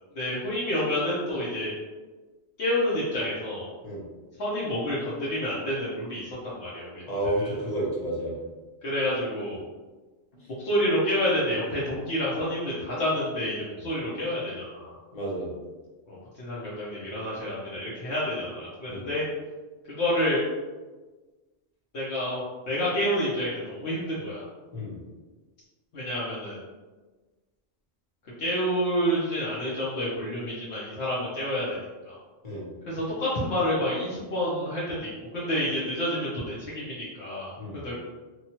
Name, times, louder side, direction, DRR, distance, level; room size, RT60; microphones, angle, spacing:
voice 1, 0.1-1.7 2.6-3.7 4.4-7.0 7.4-7.5 8.8-9.6 10.5-15.0 16.1-19.2 19.9-20.4 21.9-24.5 25.9-26.6 28.4-31.8 32.0-32.2 32.9-38.0, equal, 70° left, -8 dB, 1.0 m, -29 dB
voice 2, 7.0-8.4 10.3-10.5 15.1-15.5 18.9-19.1 24.7-25.0 32.4-32.7 37.6-37.8, right 1 dB, 40° left, -5 dB, 0.8 m, -31 dB
2.9 x 2.3 x 2.8 m, 1.3 s
omnidirectional pair, 1.2 m